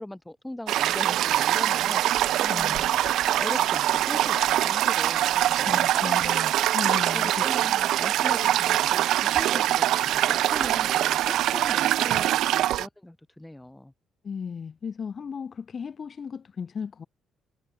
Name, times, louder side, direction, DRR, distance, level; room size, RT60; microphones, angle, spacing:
voice 1, 0.0-2.0 2.4-3.0 3.4-6.3 7.1-13.9, left 1 dB, 10° left, 4.9 m, -40 dB
Toilet flush, 0.7-12.9, right 13 dB, 80° right, 0.4 m, -23 dB
sound 1, 2.3-5.6, left 13 dB, 80° left, 3.6 m, -47 dB
voice 2, 2.5-2.8 5.6-7.4 14.2-17.1, left 6 dB, 45° left, 1.2 m, -35 dB
cardioid pair, 90°, 0 cm